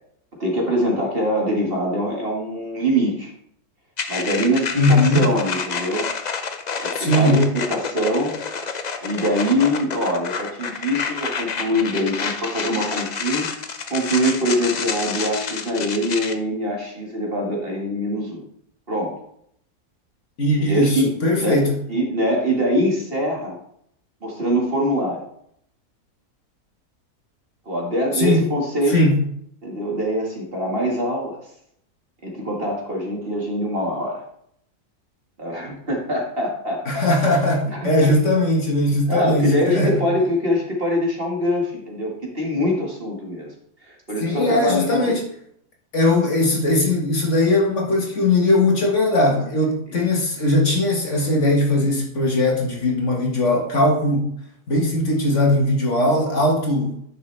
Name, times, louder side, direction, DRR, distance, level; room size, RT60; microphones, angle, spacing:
voice 1, 0.4-3.3 4.1-6.0 6.8-8.3 9.0-13.5 13.9-18.4 18.9-19.2 20.6-21.6 21.9-23.6 24.2-25.3 27.7-29.1 29.6-31.4 32.2-34.2 35.4-37.1 37.7-37.9 39.1-43.5 43.8-45.2, equal, 35° right, -1 dB, 1.9 m, -23 dB
sound 1, 4.0-16.3, left 5 dB, 75° left, 0.4 m, -29 dB
voice 2, 4.8-5.2 6.9-7.4 20.4-21.7 28.1-28.4 28.9-29.2 36.9-40.1 44.2-45.3 45.9-54.3 54.7-57.0, left 1 dB, 50° left, 0 dB, 1.9 m, -19 dB
10.0 x 6.7 x 3.3 m, 0.69 s
omnidirectional pair, 1.7 m